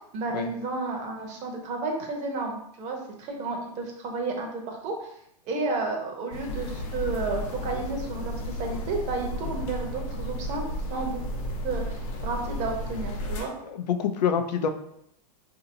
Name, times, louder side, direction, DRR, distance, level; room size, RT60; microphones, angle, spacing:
voice 1, 0.1-5.1 5.5-10.6 10.9-11.2 11.6-13.5, right 3 dB, 35° right, 2 dB, 0.8 m, -32 dB
sound 1, 6.3-13.4, equal, 55° left, 0.8 m, -33 dB
voice 2, 13.7-14.7, left 7 dB, 85° left, 7 dB, 0.5 m, -26 dB
3.8 x 2.8 x 2.7 m, 0.73 s
hypercardioid pair, 130°, 21 cm